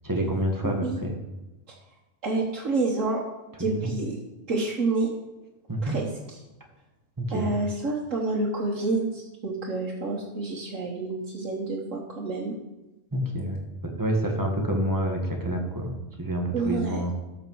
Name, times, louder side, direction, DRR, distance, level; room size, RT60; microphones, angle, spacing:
voice 1, 0.0-1.2 3.6-3.9 5.7-5.9 7.2-7.5 13.1-17.1, right 1 dB, 15° right, 1 dB, 1.6 m, -28 dB
voice 2, 0.6-1.0 1.7-1.8 2.2-3.2 3.6-4.1 4.5-5.1 5.8-6.4 7.3-12.5 16.5-17.0, right 3 dB, 90° right, -4 dB, 1.7 m, -28 dB
13.0 x 5.9 x 4.7 m, 1.1 s
omnidirectional pair, 1.3 m